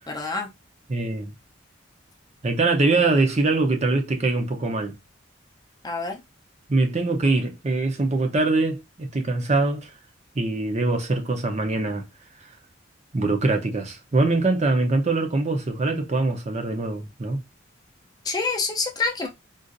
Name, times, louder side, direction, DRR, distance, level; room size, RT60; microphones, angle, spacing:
voice 1, 0.1-0.5 5.8-6.2 18.2-19.3, left 4 dB, 20° left, 0.5 m, -27 dB
voice 2, 0.9-1.3 2.4-5.0 6.7-9.9 10.3-12.0 12.4-12.5 13.1-17.4, right 3 dB, 35° right, 0.6 m, -23 dB
3.9 x 2.4 x 2.5 m
head